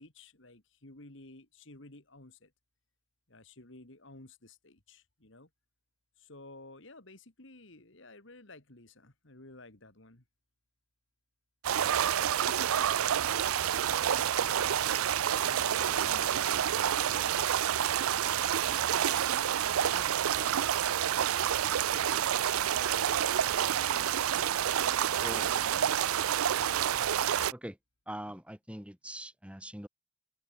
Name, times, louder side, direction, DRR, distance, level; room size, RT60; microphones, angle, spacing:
voice 1, 0.0-2.5 3.3-5.5 6.2-10.2 14.5-17.5, left 2 dB, 60° left, 2.7 m, -53 dB
sound 1, 11.6-27.5, right 9 dB, 85° right, 0.5 m, -28 dB
voice 2, 19.8-20.5 25.2-25.5 27.5-27.8 28.1-29.9, right 1 dB, 5° right, 2.3 m, -43 dB
head